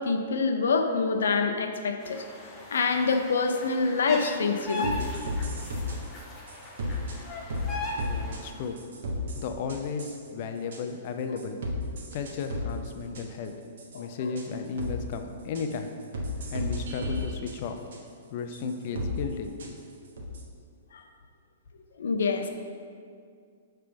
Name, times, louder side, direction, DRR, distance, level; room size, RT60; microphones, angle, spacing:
voice 1, 0.0-2.2 2.7-4.9 13.9-14.0 20.9-21.0 22.0-22.5, left 4 dB, 90° left, 5 dB, 0.6 m, -26 dB
sound 1, 2.0-8.6, left 2 dB, 15° left, 0.8 m, -39 dB
sound 2, 4.7-6.0 6.5-7.2 7.5-7.7 8.0-8.4 8.8-10.2 10.7-10.8 11.4-12.9 13.1-13.2 13.8-14.0 14.4-14.5 14.8-14.9 15.5-15.8 16.1-17.5 17.9-18.0 18.5-18.6 18.9-19.1 19.6-19.7 20.2-20.4, left 1 dB, 70° right, 1.0 m, -33 dB
voice 2, 8.0-8.8 9.4-11.6 12.1-13.5 13.9-15.9 16.5-17.8 18.3-19.5, left 5 dB, 45° left, 6 dB, 0.5 m, -34 dB
6.8 x 3.3 x 5.1 m, 2.2 s
hypercardioid pair, 155°, 0 cm